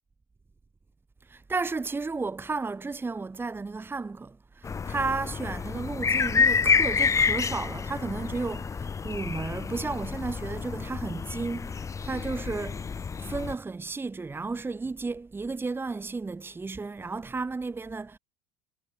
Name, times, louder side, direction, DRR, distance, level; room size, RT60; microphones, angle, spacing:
voice 1, 1.2-12.9 13.2-18.2, right 4 dB, 15° right, 2.2 m, -33 dB
sound 1, 4.6-13.6, left 5 dB, 20° left, 1.1 m, -28 dB
hypercardioid pair, 95°, 14 cm